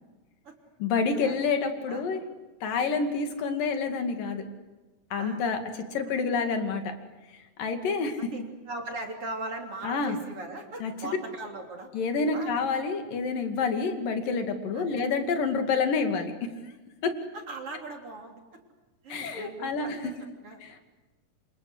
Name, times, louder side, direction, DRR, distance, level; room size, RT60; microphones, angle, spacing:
voice 1, 0.8-2.2 2.6-4.4 5.1-5.6 5.9-6.8 7.6-8.1 9.8-10.2 10.8-10.9 11.9-16.3 17.0-17.1 19.1-20.0, left 4 dB, 90° left, 6 dB, 4.0 m, -28 dB
voice 2, 8.2-11.9 12.3-12.6 14.7-15.0 17.3-18.4 19.0-20.1 20.4-20.6, right 2 dB, 45° right, 2 dB, 4.2 m, -39 dB
27.5 x 26.5 x 7.9 m, 1.2 s
omnidirectional pair, 3.8 m